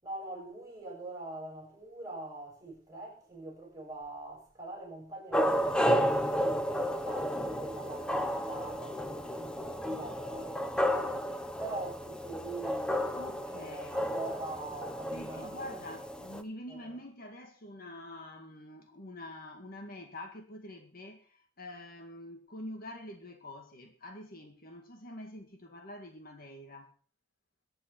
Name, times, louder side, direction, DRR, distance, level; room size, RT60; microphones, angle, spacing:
voice 1, 0.0-6.6 7.0-11.3 11.6-13.1 13.5-15.9 16.7-17.0, right 2 dB, 15° right, 7.2 m, -43 dB
sound 1, 5.3-16.4, equal, 5° left, 1.0 m, -32 dB
voice 2, 13.2-14.0 15.1-26.9, left 1 dB, 45° left, 2.0 m, -46 dB
22.5 x 9.2 x 4.4 m
head